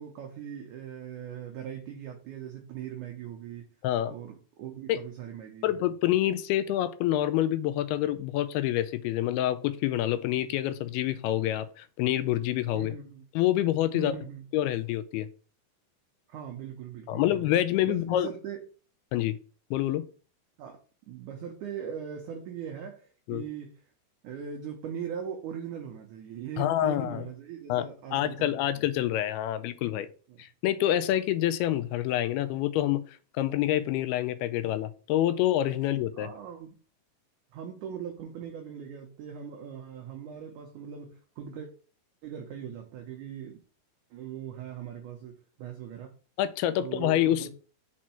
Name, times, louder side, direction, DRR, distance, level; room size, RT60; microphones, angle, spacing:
voice 1, 0.0-3.7 4.1-5.7 12.7-13.2 13.9-14.4 16.3-17.6 17.9-18.7 20.6-20.8 21.1-23.8 24.2-28.7 30.3-30.4 36.1-36.8 37.5-41.7 42.2-43.6 44.1-46.1 46.8-47.5, right 8 dB, 75° right, 3 dB, 1.9 m, -40 dB
voice 2, 3.8-4.1 4.9-5.0 5.6-12.9 13.4-14.1 14.5-15.3 17.1-18.3 19.1-19.4 19.7-20.0 23.3-23.5 26.6-27.2 27.7-30.1 30.4-33.0 33.3-36.3 46.4-47.5, left 13 dB, 85° left, 12 dB, 2.5 m, -27 dB
6.0 x 4.5 x 4.3 m, 0.38 s
omnidirectional pair, 4.4 m